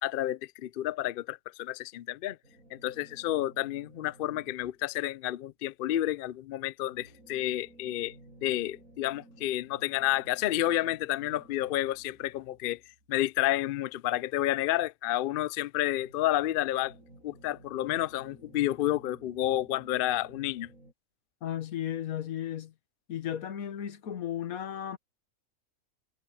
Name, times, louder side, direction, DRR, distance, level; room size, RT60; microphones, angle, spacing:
voice 1, 0.0-2.4 2.7-8.1 8.4-12.8 13.1-16.9 17.2-20.7, left 14 dB, 90° left, 0.4 m, -30 dB
sound 1, 2.4-5.0 6.8-13.8 15.8-20.9, right 1 dB, 65° right, 8.4 m, -56 dB
voice 2, 21.4-22.7 23.1-25.0, left 10 dB, 70° left, 1.5 m, -35 dB
omnidirectional pair, 1.5 m